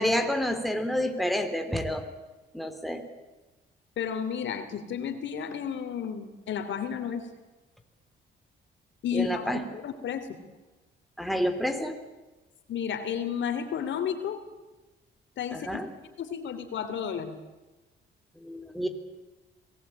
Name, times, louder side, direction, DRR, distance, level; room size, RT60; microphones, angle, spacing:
voice 1, 0.0-2.1 2.5-3.0 9.1-9.6 11.2-12.0 15.5-15.9 18.4-18.9, equal, ahead, 6 dB, 3.3 m, -29 dB
voice 2, 4.0-7.3 9.0-10.4 12.7-14.4 15.4-15.7 16.2-17.3, left 8 dB, 70° left, 8 dB, 3.2 m, -32 dB
26.5 x 19.5 x 8.9 m, 1.2 s
cardioid pair, 90°, 20 cm